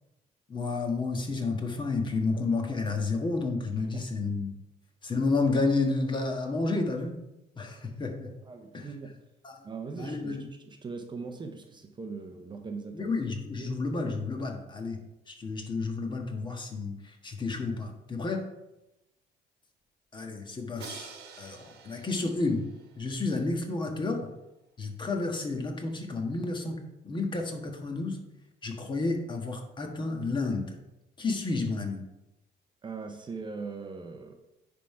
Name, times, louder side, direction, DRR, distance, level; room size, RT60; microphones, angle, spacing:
voice 1, 0.5-4.5 5.0-7.2 7.6-8.3 8.7-8.8 9.4-9.5 10.0-10.4 12.9-18.4 20.1-22.7 23.0-24.3 24.8-26.8 27.0-28.2 28.6-30.8 31.2-32.0, left 3 dB, 30° left, 3 dB, 1.4 m, -31 dB
voice 2, 3.7-4.1 8.4-9.2 9.6-13.1 13.5-13.8 32.8-34.3, right 4 dB, 25° right, 5 dB, 0.8 m, -40 dB
Crash cymbal, 20.8-23.7, right 6 dB, 75° right, 1.3 m, -48 dB
9.9 x 3.7 x 4.8 m, 0.94 s
cardioid pair, 110°, 17 cm